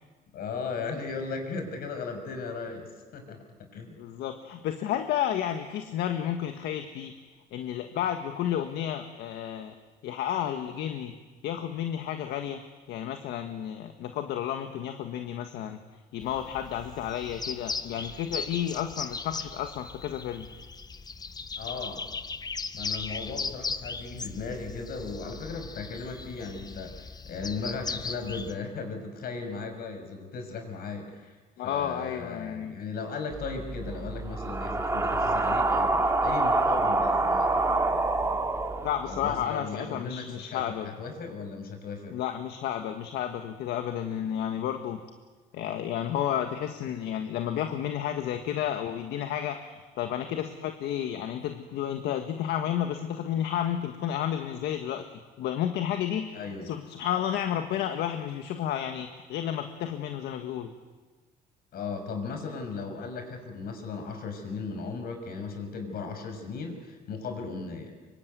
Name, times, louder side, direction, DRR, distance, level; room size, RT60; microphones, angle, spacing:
voice 1, 0.3-3.4 3.7-4.0 21.6-22.1 22.7-31.4 31.6-38.4 39.0-42.1 56.3-56.7 61.7-67.9, left 4 dB, 65° left, 6 dB, 6.0 m, -37 dB
voice 2, 4.0-7.1 7.5-9.8 10.0-11.1 11.4-12.6 12.9-15.8 16.1-20.5 31.6-32.7 38.8-40.9 42.1-45.0 45.5-55.0 55.4-60.7, left 10 dB, 80° left, 6 dB, 1.7 m, -31 dB
sound 1, 16.2-28.5, left 4 dB, 25° left, 1.0 m, -38 dB
sound 2, 33.3-39.4, right 2 dB, 15° right, 2.7 m, -26 dB
25.0 x 23.5 x 9.4 m, 1.3 s
cardioid pair, 110°, 17 cm